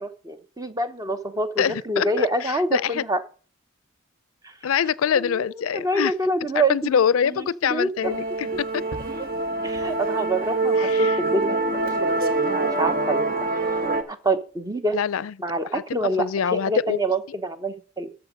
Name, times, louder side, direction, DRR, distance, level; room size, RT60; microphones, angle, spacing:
voice 1, 0.0-3.2 4.4-4.7 5.2-5.4 5.7-7.0 7.2-7.9 9.6-13.3 14.1-15.0 15.4-16.3 16.7-18.1, right 2 dB, 15° right, 0.9 m, -26 dB
voice 2, 1.6-3.0 4.6-6.1 6.5-8.8 10.8-11.2 14.9-15.3 15.7-15.8 16.2-17.0, left 7 dB, 90° left, 0.4 m, -24 dB
Musical instrument, 8.0-14.0, right 2 dB, 45° right, 1.5 m, -25 dB
13.5 x 7.0 x 5.1 m
head